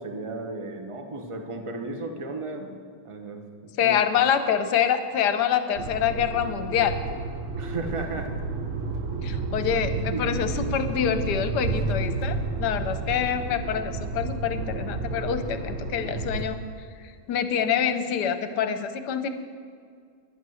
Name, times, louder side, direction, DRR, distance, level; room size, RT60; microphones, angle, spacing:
voice 1, 0.0-2.7 3.0-4.2 7.6-8.3 9.3-9.4 9.9-10.7, right 2 dB, 30° right, 5 dB, 0.5 m, -35 dB
voice 2, 3.8-7.0 9.2-16.6 17.3-19.3, left 8 dB, 65° left, 10 dB, 1.2 m, -26 dB
sound 1, 5.7-16.4, right 3 dB, 55° right, 0.9 m, -31 dB
11.5 x 10.5 x 6.3 m, 2.1 s
omnidirectional pair, 2.2 m